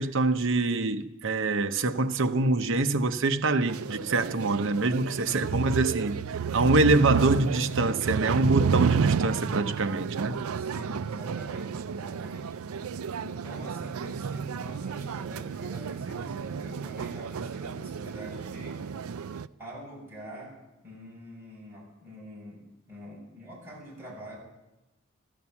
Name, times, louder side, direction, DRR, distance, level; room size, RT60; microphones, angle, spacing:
voice 1, 0.0-10.4, right 2 dB, 60° right, 0.9 m, -25 dB
sound 1, 3.7-19.5, right 6 dB, 80° right, 0.4 m, -31 dB
voice 2, 5.1-5.5 10.5-12.6 13.2-18.9 19.6-20.6 20.8-22.6 22.9-24.4, equal, 10° right, 7.3 m, -45 dB
14.5 x 12.5 x 7.1 m
head